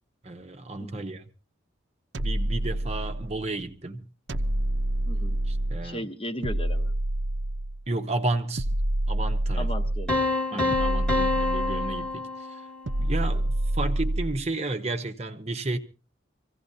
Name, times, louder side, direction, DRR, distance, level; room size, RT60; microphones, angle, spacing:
voice 1, 0.2-1.3 2.2-4.1 5.5-6.1 7.9-8.7 9.1-9.7 10.5-12.7 13.0-15.8, right 2 dB, 35° right, 0.8 m, -32 dB
sound 1, 2.1-3.5 4.3-5.9 6.4-7.8 8.6-10.2 10.7-12.1 12.9-14.5, right 1 dB, 70° right, 0.7 m, -27 dB
voice 2, 5.1-5.4 5.8-6.9 9.6-10.8, equal, 25° left, 1.0 m, -37 dB
sound 2, 10.1-13.0, left 2 dB, 5° left, 1.3 m, -27 dB
25.5 x 16.0 x 2.7 m
head